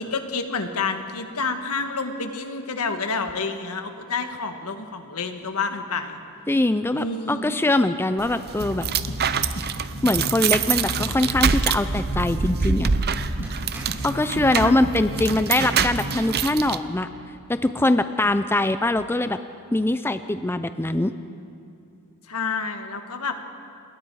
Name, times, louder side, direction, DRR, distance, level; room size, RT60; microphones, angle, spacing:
voice 1, 0.0-6.2 6.9-7.6 14.2-14.8 22.3-23.4, left 4 dB, 80° left, 6 dB, 1.6 m, -29 dB
voice 2, 6.5-8.9 9.8-12.9 14.0-17.1 17.5-19.4 19.7-21.1, left 2 dB, 10° left, 11 dB, 0.4 m, -22 dB
sound 1, 8.2-16.8, right 6 dB, 45° right, 0.7 m, -26 dB
sound 2, 8.6-16.2, left 1 dB, 60° left, 2.6 m, -33 dB
sound 3, 10.4-10.9 12.9-13.0 13.4-14.2 15.1-15.5, right 1 dB, 10° right, 3.9 m, -44 dB
28.0 x 21.0 x 4.8 m, 2.7 s
head